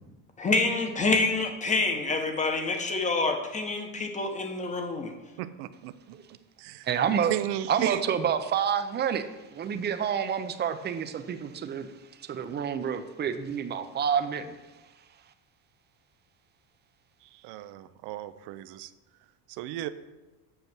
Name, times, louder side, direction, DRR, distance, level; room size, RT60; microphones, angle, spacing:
voice 1, 0.4-5.1, left 3 dB, 15° left, 5 dB, 1.1 m, -27 dB
voice 2, 5.4-6.2 6.6-6.9 7.3-8.0 17.2-18.9 19.5-19.9, right 13 dB, 75° right, 12 dB, 0.7 m, -35 dB
voice 3, 6.8-7.3 7.7-11.9 12.2-14.5, right 8 dB, 25° right, 9 dB, 0.6 m, -28 dB
7.9 x 6.9 x 6.1 m, 1.1 s
cardioid pair, 150°, 41 cm